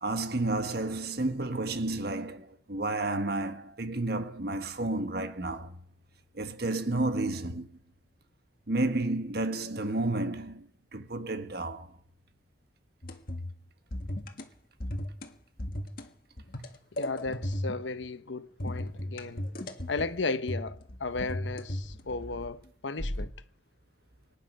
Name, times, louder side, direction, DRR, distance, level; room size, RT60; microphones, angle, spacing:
voice 1, 0.0-5.8 6.3-7.7 8.7-11.9, right 2 dB, 55° right, 1.4 m, -31 dB
sound 1, 13.0-13.6 13.9-14.4 14.8-15.3 15.6-16.1 16.4-17.9 18.6-20.2 20.5-22.6 23.0-23.3, left 1 dB, 50° left, 1.8 m, -36 dB
voice 2, 17.0-19.4 19.9-23.3, left 3 dB, 80° left, 1.0 m, -35 dB
25.5 x 9.9 x 5.5 m
head